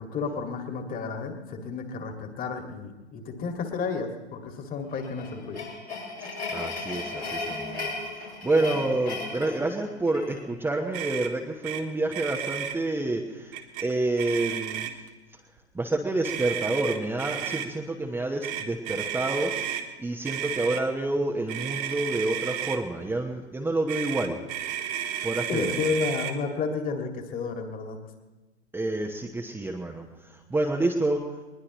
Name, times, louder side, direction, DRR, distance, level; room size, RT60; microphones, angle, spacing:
voice 1, 0.0-5.7 25.5-28.0, left 4 dB, 25° left, 4 dB, 2.2 m, -31 dB
sound 1, 4.9-10.4, left 3 dB, 85° left, 6.3 m, -35 dB
voice 2, 6.5-14.9 15.3-15.4 15.7-19.5 20.0-24.4 25.2-25.9 28.7-31.3, right 2 dB, 5° right, 0 dB, 1.1 m, -28 dB
Motor vehicle (road), 10.9-11.3 11.6-11.8 12.1-12.8 13.5-13.9 14.2-15.1 16.2-17.7 18.4-19.8 20.2-20.8 21.5-22.8 23.9-26.3, right 10 dB, 45° right, 1.6 m, -32 dB
22.0 x 20.5 x 3.1 m, 1.2 s
figure-of-eight pair, 100°, 33 cm